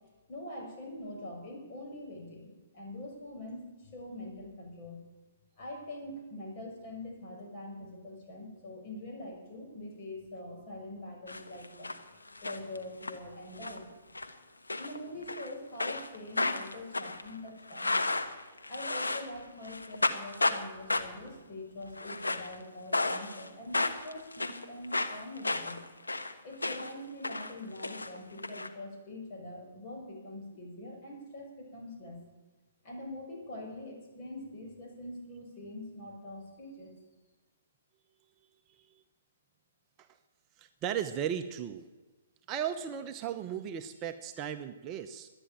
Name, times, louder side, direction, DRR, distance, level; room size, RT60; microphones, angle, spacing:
voice 1, 0.3-5.0 5.6-11.9 12.4-13.9 14.8-18.0 18.7-25.8 26.4-32.2 32.8-36.9, left 1 dB, 35° left, -1 dB, 6.1 m, -44 dB
sound 1, 11.3-12.0 12.3-13.1 13.6-13.8 14.1-14.3 14.7-15.5 15.8-19.4 19.6-20.6 20.9-21.3 21.9-22.6 22.9-23.5 23.7-27.0 27.2-28.7, left 2 dB, 90° left, 1.2 m, -33 dB
voice 2, 40.6-41.9 42.5-45.3, right 9 dB, 30° right, 7 dB, 0.8 m, -36 dB
12.5 x 9.8 x 9.2 m, 1.2 s
figure-of-eight pair, 125°, 0 cm